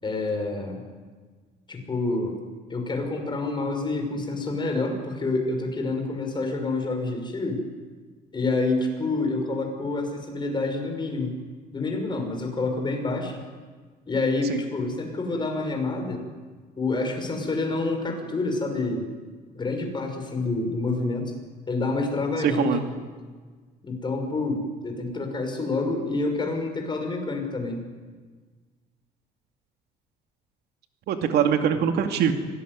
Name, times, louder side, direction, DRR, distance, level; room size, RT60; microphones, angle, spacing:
voice 1, 0.0-0.8 1.7-2.4 2.7-7.6 8.3-11.4 11.7-13.4 14.1-16.2 16.8-19.1 19.5-21.3 21.7-22.7 23.8-27.9, left 3 dB, 25° left, 4 dB, 6.0 m, -28 dB
voice 2, 22.4-22.8 31.1-32.3, right 8 dB, 75° right, 6 dB, 2.5 m, -23 dB
25.5 x 18.5 x 9.7 m, 1.5 s
cardioid pair, 110°, 17 cm